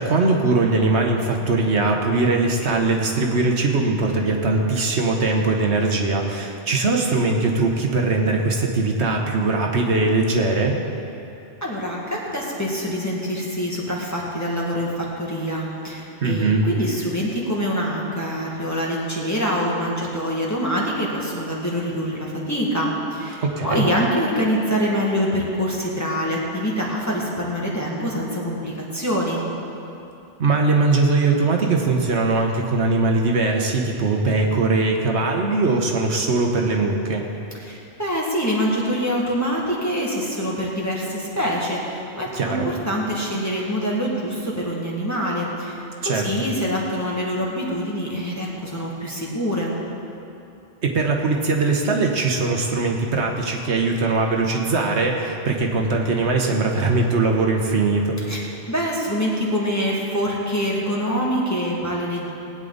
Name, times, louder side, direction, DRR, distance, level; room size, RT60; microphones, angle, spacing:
voice 1, 0.0-10.8 16.2-16.6 23.4-23.9 30.4-37.2 42.3-42.7 46.0-46.5 50.8-58.2, right 3 dB, 70° right, 1 dB, 1.3 m, -21 dB
voice 2, 11.6-29.4 37.6-49.7 58.2-62.3, equal, 15° left, -5 dB, 1.9 m, -25 dB
19.0 x 9.1 x 4.0 m, 2.8 s
omnidirectional pair, 1.2 m